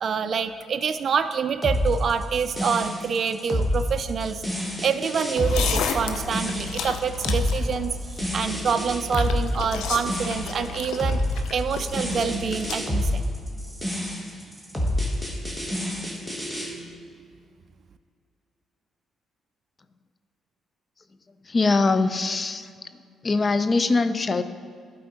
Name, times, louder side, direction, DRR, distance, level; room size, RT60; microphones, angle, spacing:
voice 1, 0.0-4.4 4.8-13.2, right 6 dB, 55° right, 10 dB, 0.3 m, -26 dB
sound 1, 1.6-16.7, left 1 dB, 5° left, 1.4 m, -28 dB
sound 2, 5.4-12.8, left 6 dB, 85° left, 0.5 m, -33 dB
voice 2, 21.5-22.7 23.2-24.4, left 3 dB, 35° left, 12 dB, 0.4 m, -22 dB
11.5 x 4.4 x 4.0 m, 2.2 s
cardioid pair, 90°, 0 cm